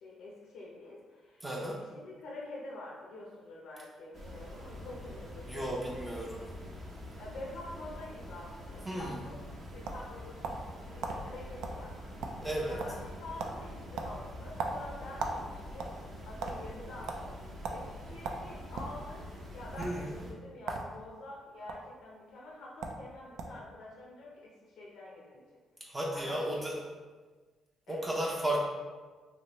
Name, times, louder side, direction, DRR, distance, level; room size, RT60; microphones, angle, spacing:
voice 1, 0.0-6.1 7.2-9.3 9.7-11.9 12.6-15.9 16.3-17.3 17.7-19.3 19.5-25.4 25.9-26.6 27.9-28.6, left 2 dB, 80° left, -4 dB, 0.6 m, -47 dB
voice 2, 1.4-1.7 5.5-6.4 8.8-9.2 12.4-12.8 19.8-20.2 25.8-26.8 27.9-28.6, right 1 dB, 20° right, -3 dB, 0.5 m, -34 dB
sound 1, 4.1-20.3, left 1 dB, 55° right, 0.8 m, -46 dB
sound 2, 9.8-10.7 11.0-11.2 11.6-11.8 12.1-12.5 12.8-13.1 13.4-13.6 14.0-15.4 15.7-16.6 17.1-17.2 17.6-17.8 18.2-19.0 19.7-19.9 20.6-20.9 21.2-21.8 22.5-22.6 22.8-23.0 23.4-23.6, right 4 dB, 85° right, 0.3 m, -37 dB
3.1 x 2.7 x 2.9 m, 1.4 s
cardioid pair, 90°, 0 cm